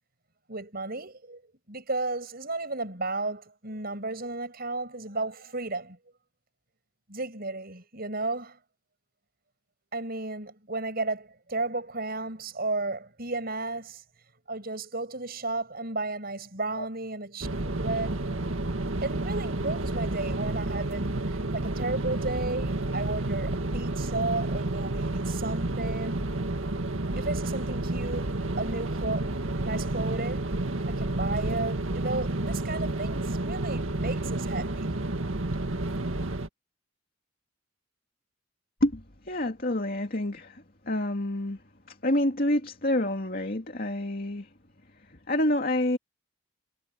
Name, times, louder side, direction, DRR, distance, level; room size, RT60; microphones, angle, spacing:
voice 1, 0.5-1.4 1.7-6.0 7.1-8.6 9.9-14.0 14.5-17.5 17.8-18.2 19.0-21.2 21.5-26.3 27.2-34.9, right 2 dB, 50° right, 7.4 m, -33 dB
sound 1, 17.4-36.5, right 2 dB, 80° right, 2.0 m, -30 dB
voice 2, 38.8-41.6 41.9-44.5 45.1-46.0, left 1 dB, 45° left, 2.6 m, -28 dB
head